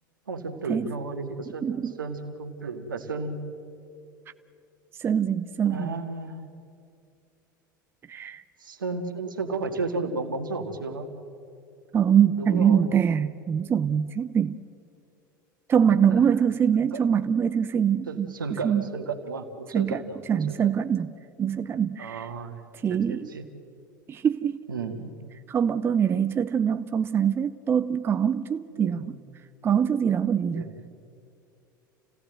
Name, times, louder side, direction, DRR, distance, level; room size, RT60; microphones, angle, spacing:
voice 1, 0.3-3.4 5.7-6.4 8.6-11.1 12.3-12.9 16.2-16.5 16.9-17.0 18.1-20.6 22.0-23.5 24.7-25.1 28.7-29.0 30.5-30.9, right 3 dB, 75° right, 1.9 m, -33 dB
voice 2, 1.6-1.9 5.0-5.9 8.1-8.4 11.9-14.6 15.7-18.8 19.7-20.0 20.3-21.1 21.4-22.3 22.8-23.3 24.1-24.6 25.5-29.2 29.6-30.7, right 8 dB, 20° right, 0.5 m, -24 dB
28.5 x 17.0 x 7.7 m
figure-of-eight pair, 80°, 11 cm